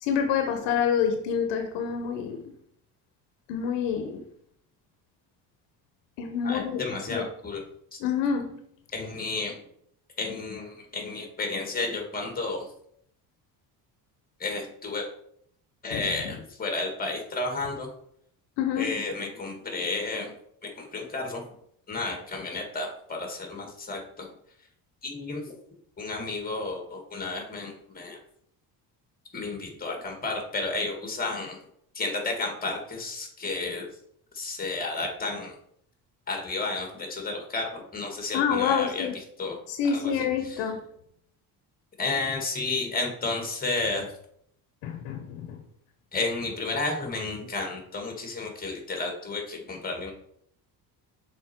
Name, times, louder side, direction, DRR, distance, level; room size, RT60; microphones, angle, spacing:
voice 1, 0.0-2.4 3.5-4.2 6.2-7.2 8.0-8.6 15.9-16.1 18.6-19.0 38.3-39.2 39.7-40.8 44.8-45.6, left 7 dB, 85° left, 1.0 m, -27 dB
voice 2, 6.4-7.6 7.9-8.0 8.9-9.6 10.2-12.7 14.4-15.1 15.8-17.9 18.8-20.3 20.6-21.4 21.9-24.3 25.0-25.5 26.0-28.2 29.3-31.6 31.9-33.9 34.3-35.5 36.3-39.1 39.4-39.6 39.9-40.6 42.0-44.1 46.1-50.1, left 3 dB, 20° left, 2.1 m, -32 dB
6.6 x 4.3 x 4.5 m
cardioid pair, 120°, 42 cm